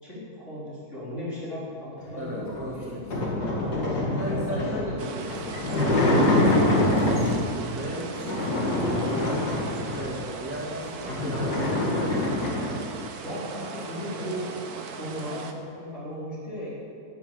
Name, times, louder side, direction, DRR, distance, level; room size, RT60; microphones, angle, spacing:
voice 1, 0.0-2.8 3.5-4.7 13.2-14.5 15.0-16.7, equal, 45° left, -7 dB, 4.3 m, -36 dB
voice 2, 2.2-3.7 4.2-6.0 6.3-8.5 8.8-12.8, right 1 dB, 10° right, -5 dB, 1.8 m, -36 dB
sound 1, 2.4-7.6 8.1-10.2 10.6-10.7 11.0-12.8, left 1 dB, 85° left, 2.8 m, -25 dB
sound 2, 5.0-15.5, right 5 dB, 70° right, 1.6 m, -39 dB
12.5 x 11.0 x 8.5 m, 2.6 s
omnidirectional pair, 1.7 m